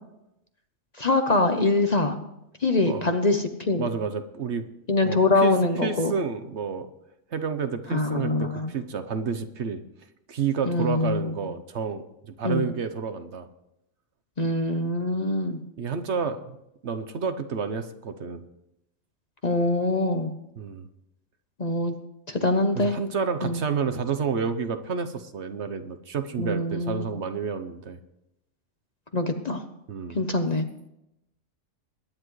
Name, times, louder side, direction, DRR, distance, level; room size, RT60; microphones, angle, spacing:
voice 1, 1.0-2.2 2.6-3.9 4.9-6.1 7.9-8.7 10.7-11.4 12.4-12.6 14.4-15.6 19.4-20.3 21.6-21.9 22.3-23.0 23.4-23.6 26.4-27.1 29.1-29.6 30.1-30.7, left 2 dB, 35° left, 6 dB, 0.9 m, -24 dB
voice 2, 3.8-4.6 5.0-5.5 5.8-6.9 7.3-9.8 10.3-13.5 15.8-16.6 16.8-18.4 20.6-20.9 22.8-28.0 29.9-30.2, right 6 dB, 60° right, 9 dB, 1.1 m, -30 dB
22.0 x 10.0 x 3.2 m, 0.86 s
omnidirectional pair, 1.4 m